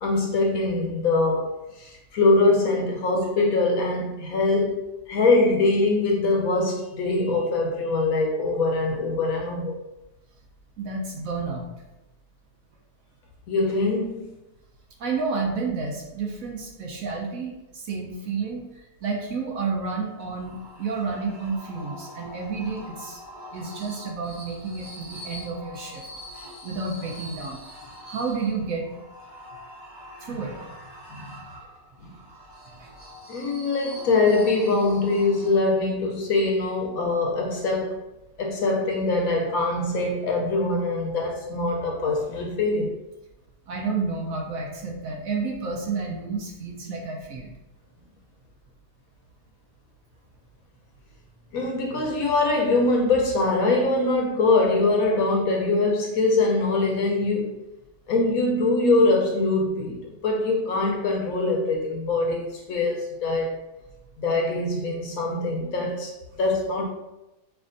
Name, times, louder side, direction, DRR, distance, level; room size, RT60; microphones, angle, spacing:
voice 1, 0.0-4.8 5.1-9.8 13.5-14.3 31.1-31.3 33.3-38.0 38.4-43.0 51.5-57.5 58.1-63.6 64.2-66.1 66.4-66.8, left 2 dB, 65° left, 0 dB, 0.9 m, -23 dB
voice 2, 10.8-11.7 15.0-18.6 19.0-23.2 23.5-26.0 26.6-27.6 28.0-28.9 30.2-30.6 32.8-32.9 43.7-47.5, right 4 dB, 65° right, 0 dB, 1.0 m, -30 dB
sound 1, 20.2-35.9, equal, 30° right, 0.5 m, -44 dB
5.8 x 2.4 x 2.5 m, 0.96 s
omnidirectional pair, 1.8 m